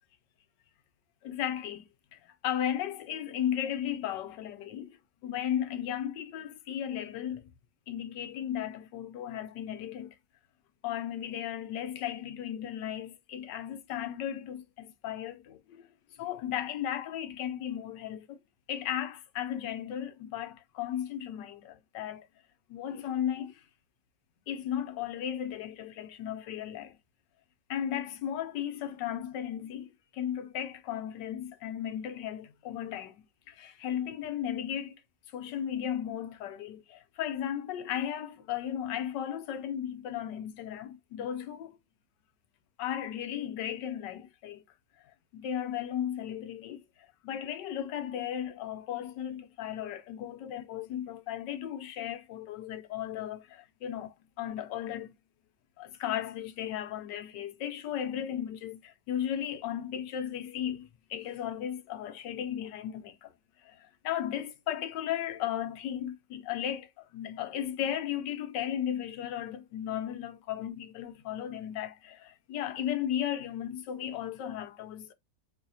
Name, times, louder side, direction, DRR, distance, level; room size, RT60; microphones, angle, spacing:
voice 1, 1.2-5.0 5.2-7.5 7.9-10.1 10.8-15.9 16.1-18.4 18.7-22.3 22.7-23.6 24.5-27.0 27.7-35.0 35.3-41.8 42.8-44.6 45.0-55.1 55.8-63.3 63.6-75.1, left 10 dB, 85° left, 1.4 m, -35 dB
3.9 x 2.7 x 2.6 m
omnidirectional pair, 1.8 m